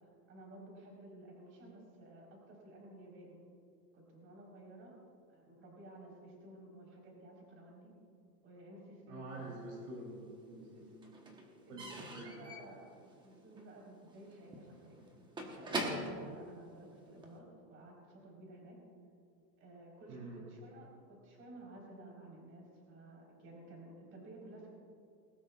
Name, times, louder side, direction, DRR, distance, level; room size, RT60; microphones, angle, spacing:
voice 1, 0.0-3.4 3.9-5.0 5.3-7.9 8.4-9.5 10.7-10.8 11.5-15.1 15.5-18.8 19.6-24.7, right 1 dB, 25° right, -2 dB, 4.0 m, -54 dB
voice 2, 9.1-11.2 11.7-12.4 20.1-20.4, right 2 dB, 45° right, -2 dB, 3.2 m, -47 dB
Slam / Squeak / Wood, 9.5-10.4 10.6-17.4, right 1 dB, 10° right, 1.0 m, -44 dB
20.5 x 18.5 x 2.4 m, 2.4 s
supercardioid pair, 155°, 50 cm